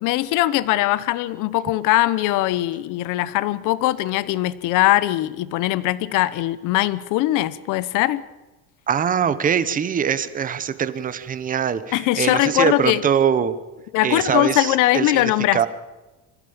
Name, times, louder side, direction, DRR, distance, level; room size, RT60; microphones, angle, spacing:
voice 1, 0.0-8.2 11.9-13.0 13.9-15.7, left 16 dB, 55° left, 17 dB, 1.0 m, -21 dB
voice 2, 8.9-13.5 14.0-15.7, right 8 dB, 20° right, 13 dB, 1.0 m, -22 dB
27.0 x 15.0 x 7.2 m, 1.1 s
cardioid pair, 170°, 37 cm